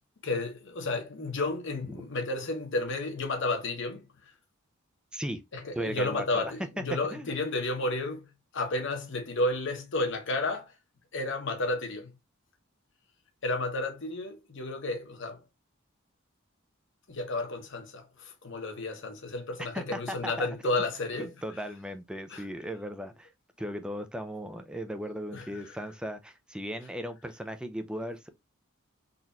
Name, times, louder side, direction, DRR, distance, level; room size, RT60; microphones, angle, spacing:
voice 1, 0.2-4.1 5.5-8.3 8.5-10.7 11.1-12.1 13.4-15.4 17.1-21.3 22.3-22.4 25.3-25.5, left 2 dB, 60° left, 1.0 m, -32 dB
voice 2, 5.8-6.8 7.1-7.3 19.6-20.8 21.2-23.3 23.6-28.3, equal, 5° right, 0.5 m, -37 dB
4.0 x 3.0 x 2.6 m
head